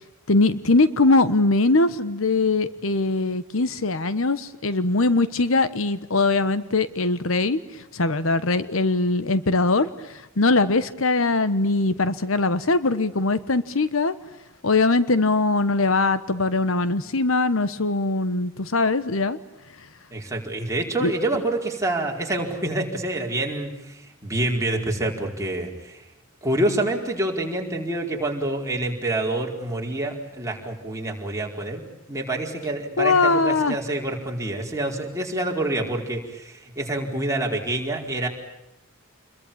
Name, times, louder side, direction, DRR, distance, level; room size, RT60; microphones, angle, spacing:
voice 1, 0.3-7.6 7.9-14.1 14.6-19.4 21.0-21.1 33.0-33.8, left 3 dB, 70° left, 14 dB, 1.2 m, -21 dB
voice 2, 20.1-26.0 26.4-31.8 32.1-38.3, right 1 dB, 15° right, 0 dB, 4.8 m, -27 dB
28.5 x 22.5 x 8.8 m, 0.93 s
head